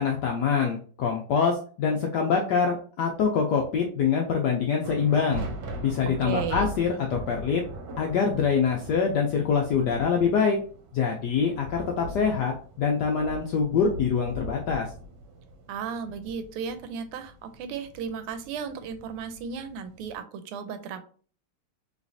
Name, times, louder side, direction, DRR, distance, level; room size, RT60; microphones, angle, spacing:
voice 1, 0.0-5.4 5.8-7.6 8.0-10.6 10.9-14.9, left 6 dB, 90° left, 1 dB, 0.9 m, -25 dB
sound 1, 4.8-20.2, right 1 dB, 70° right, 1.4 m, -40 dB
voice 2, 6.2-6.7 15.7-21.0, right 7 dB, 90° right, 8 dB, 1.5 m, -35 dB
3.3 x 3.1 x 2.6 m, 0.42 s
omnidirectional pair, 2.4 m